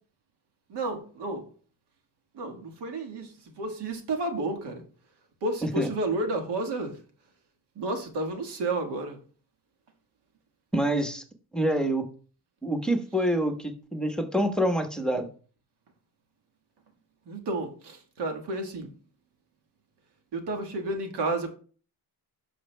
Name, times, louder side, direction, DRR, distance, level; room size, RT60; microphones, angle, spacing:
voice 1, 0.7-1.5 2.3-4.8 5.4-7.0 7.7-9.2 17.2-18.9 20.3-21.5, right 2 dB, 80° right, 1.7 m, -31 dB
voice 2, 10.7-11.2 11.5-12.1 12.6-15.3, right 1 dB, ahead, 1.1 m, -26 dB
12.0 x 6.4 x 2.2 m
cardioid pair, 85°, 40 cm